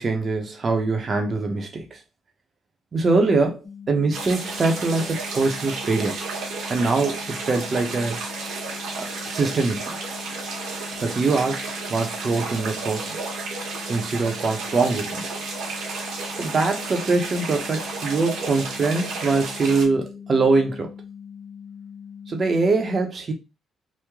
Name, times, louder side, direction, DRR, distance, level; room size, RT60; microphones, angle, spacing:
voice 1, 0.0-2.0 2.9-6.2 6.7-8.2 9.0-10.0 11.0-13.2 13.9-15.2 16.4-20.9 22.3-23.3, right 3 dB, 40° right, 0.7 m, -23 dB
sound 1, 3.6-22.6, left 7 dB, 60° left, 0.7 m, -41 dB
sound 2, 4.1-19.8, right 4 dB, 85° right, 1.1 m, -32 dB
3.1 x 2.1 x 3.5 m
cardioid pair, 90°, 0 cm